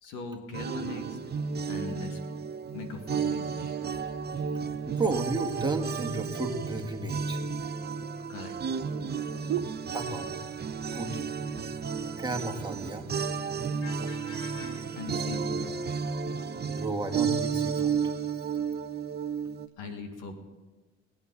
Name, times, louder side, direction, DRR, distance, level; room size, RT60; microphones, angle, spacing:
voice 1, 0.0-1.2 1.7-2.2 2.7-3.5 8.3-8.6 13.8-15.7 19.8-20.3, left 4 dB, 75° left, 5 dB, 2.0 m, -40 dB
sound 1, 0.5-19.7, right 6 dB, 30° right, 0.9 m, -32 dB
voice 2, 4.9-7.4 9.9-10.4 10.9-11.4 12.2-13.1 16.7-18.0, right 2 dB, 15° right, 1 dB, 2.0 m, -33 dB
sound 2, 7.4-10.5 10.8-11.3 11.6-11.7 12.0-12.7 13.4-14.2 14.8-15.0, right 11 dB, 55° right, 0.9 m, -40 dB
21.0 x 8.9 x 4.1 m, 1.2 s
supercardioid pair, 75°, 31 cm